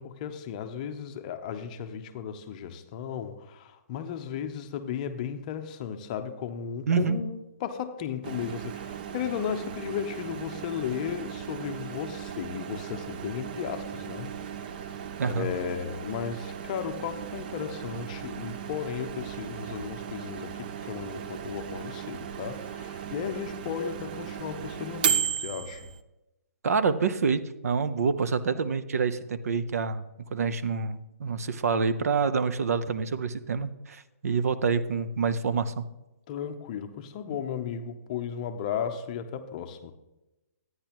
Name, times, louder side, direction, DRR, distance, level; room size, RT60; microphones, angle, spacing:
voice 1, 0.0-14.4 14.8-14.9 15.2-25.9 36.3-39.9, left 8 dB, 30° left, 0.7 m, -35 dB
voice 2, 6.9-7.2 15.2-15.5 26.6-30.0 30.3-35.9, right 5 dB, 70° right, 0.7 m, -27 dB
Microwave oven, 8.2-26.0, right 8 dB, 35° right, 0.5 m, -36 dB
12.0 x 9.5 x 3.0 m
hypercardioid pair, 160°, 9 cm